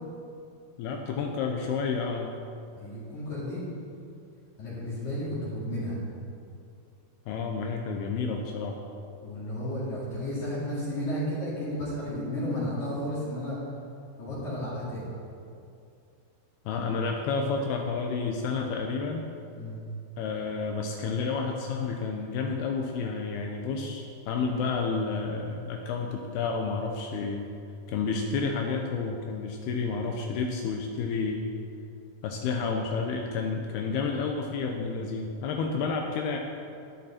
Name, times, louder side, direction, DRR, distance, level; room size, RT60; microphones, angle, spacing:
voice 1, 0.8-2.3 7.3-8.8 16.7-19.2 20.2-27.5 27.9-31.6 32.2-36.4, left 4 dB, 80° left, 2 dB, 2.6 m, -30 dB
voice 2, 2.7-3.6 4.6-6.0 9.2-13.6 14.2-15.1 19.5-19.8, left 1 dB, 50° left, -9 dB, 3.4 m, -33 dB
11.0 x 10.5 x 4.3 m, 2.5 s
omnidirectional pair, 4.8 m